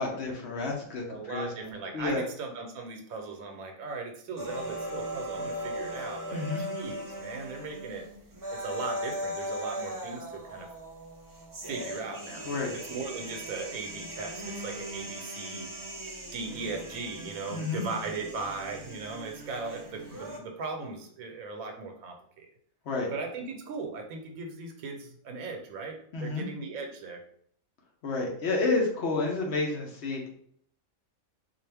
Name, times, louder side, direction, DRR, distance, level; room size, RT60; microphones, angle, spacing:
voice 1, 0.0-2.2 6.3-6.6 12.5-12.7 17.5-17.8 22.9-23.1 26.1-26.4 28.0-30.3, left 3 dB, 60° left, -1 dB, 0.9 m, -30 dB
voice 2, 1.1-8.1 8.5-10.7 11.7-16.0 16.3-22.5 23.1-27.2, right 4 dB, 85° right, 3 dB, 1.1 m, -38 dB
sound 1, 4.4-20.4, equal, 35° right, 0.3 m, -39 dB
3.7 x 2.4 x 3.3 m, 0.63 s
omnidirectional pair, 1.4 m